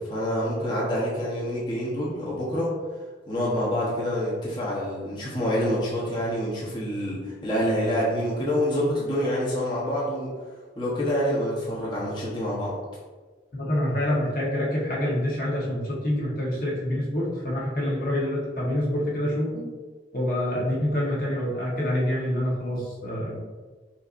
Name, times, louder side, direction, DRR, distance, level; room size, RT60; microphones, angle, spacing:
voice 1, 0.0-2.7 3.3-10.3 10.8-12.7, equal, 25° left, -7 dB, 1.0 m, -27 dB
voice 2, 13.5-19.6 20.1-23.4, left 1 dB, 50° left, -5 dB, 1.2 m, -26 dB
5.7 x 2.7 x 2.6 m, 1.4 s
head